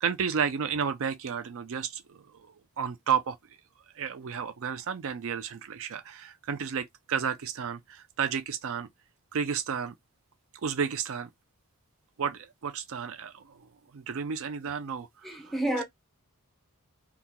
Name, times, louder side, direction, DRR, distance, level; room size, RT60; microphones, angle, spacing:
voice 1, 0.0-2.2 2.8-3.4 4.0-8.9 9.3-9.9 10.6-11.3 12.2-13.4 13.9-15.6, right 7 dB, 65° right, 0.4 m, -32 dB
voice 2, 15.2-15.8, right 1 dB, ahead, 0.6 m, -29 dB
2.8 x 2.3 x 3.6 m
head